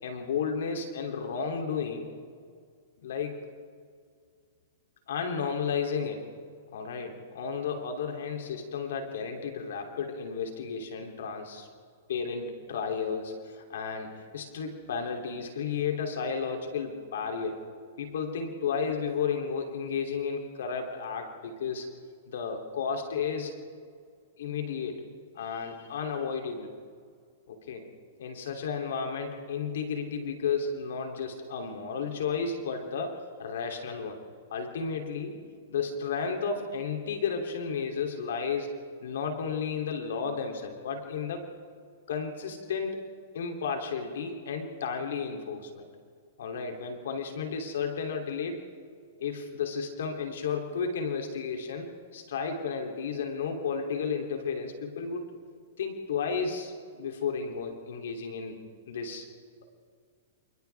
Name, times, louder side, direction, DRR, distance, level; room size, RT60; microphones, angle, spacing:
voice 1, 0.0-2.1 3.0-3.5 5.1-6.3 6.7-11.7 12.1-17.6 18.0-21.9 22.3-23.6 24.4-25.0 25.3-26.7 27.5-27.8 28.2-34.2 34.5-35.4 35.7-38.7 39.0-41.5 42.1-43.0 43.3-45.9 46.4-48.6 49.2-55.3 55.8-58.6 58.9-59.3, left 6 dB, 75° left, 3 dB, 3.0 m, -33 dB
29.0 x 28.0 x 3.5 m, 2.1 s
hypercardioid pair, 130°, 0 cm